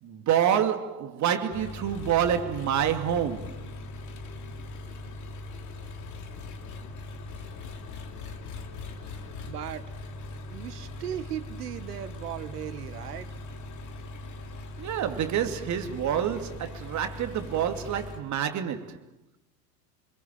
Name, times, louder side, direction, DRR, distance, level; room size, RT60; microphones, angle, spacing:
voice 1, 0.0-3.7 14.8-19.0, right 9 dB, 35° right, 2.7 m, -27 dB
Engine, 1.5-18.2, left 2 dB, 35° left, 3.6 m, -40 dB
voice 2, 9.4-9.9 10.5-13.3, right 11 dB, 65° right, 1.8 m, -37 dB
28.5 x 22.0 x 9.2 m
figure-of-eight pair, 80°, 49 cm